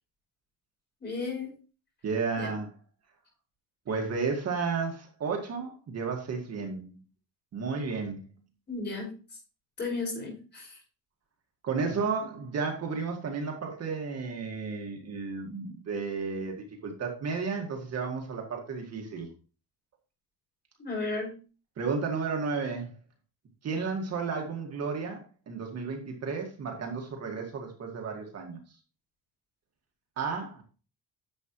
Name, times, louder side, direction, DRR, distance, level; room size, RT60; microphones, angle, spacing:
voice 1, 1.0-1.5 2.4-2.5 8.7-9.1 9.8-10.8 20.8-21.3, left 3 dB, 30° left, -1 dB, 5.3 m, -34 dB
voice 2, 2.0-2.7 3.9-7.0 7.5-8.3 11.6-16.6 16.8-19.3 21.8-22.9 23.6-28.6 30.2-30.6, right 5 dB, 45° right, 1 dB, 1.9 m, -33 dB
10.5 x 7.4 x 3.0 m, 0.36 s
cardioid pair, 155°, 35 cm